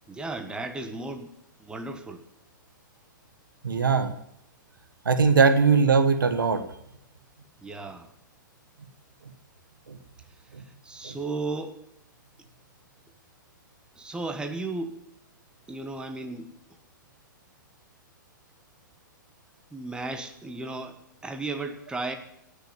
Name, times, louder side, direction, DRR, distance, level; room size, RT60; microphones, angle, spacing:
voice 1, 0.1-1.3 1.6-2.2 7.6-8.1 10.8-11.8 14.0-14.9 15.7-16.5 19.7-21.0 21.2-22.2, right 3 dB, 10° right, 6 dB, 1.5 m, -34 dB
voice 2, 3.6-4.1 5.0-6.6 9.9-10.0 10.5-10.6 11.0-11.2, right 5 dB, 80° right, 9 dB, 1.6 m, -21 dB
18.0 x 6.7 x 9.6 m, 0.77 s
hypercardioid pair, 115°, 11 cm